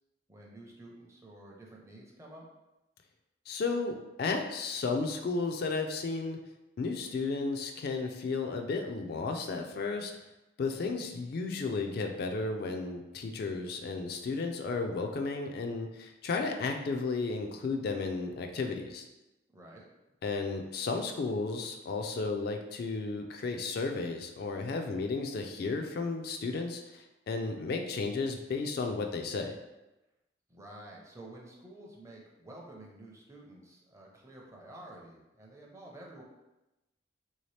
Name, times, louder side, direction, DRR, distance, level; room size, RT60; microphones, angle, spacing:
voice 1, 0.3-2.4 10.7-11.1 19.5-19.9 30.5-36.2, right 1 dB, 15° right, -2 dB, 0.5 m, -50 dB
voice 2, 3.5-6.4 6.8-10.1 10.6-19.1 20.2-29.6, left 3 dB, 55° left, 4 dB, 0.3 m, -33 dB
3.2 x 2.7 x 3.2 m, 0.99 s
head